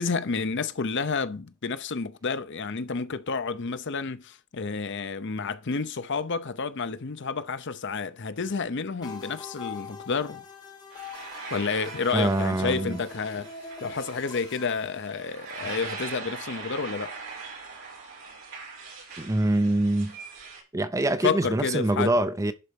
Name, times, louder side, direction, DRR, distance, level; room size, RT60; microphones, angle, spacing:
voice 1, 0.0-10.4 11.5-13.5 13.8-17.1 21.2-22.1, left 5 dB, 55° left, 0.7 m, -30 dB
sound 1, 9.0-14.7, left 3 dB, 20° left, 1.9 m, -42 dB
sound 2, 10.9-20.6, right 4 dB, 65° right, 5.9 m, -41 dB
voice 2, 12.1-13.0 19.2-20.2 20.7-22.5, right 1 dB, 15° right, 0.5 m, -24 dB
11.0 x 4.3 x 5.2 m
head